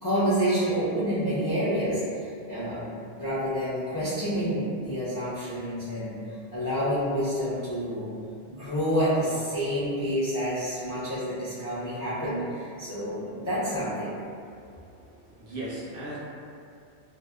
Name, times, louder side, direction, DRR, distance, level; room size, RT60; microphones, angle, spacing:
voice 1, 0.0-6.1 6.5-8.1 8.5-14.1, equal, 35° left, -12 dB, 0.3 m, -28 dB
voice 2, 14.4-16.2, right 1 dB, 60° right, -8 dB, 0.7 m, -39 dB
2.7 x 2.0 x 2.2 m, 2.5 s
omnidirectional pair, 1.1 m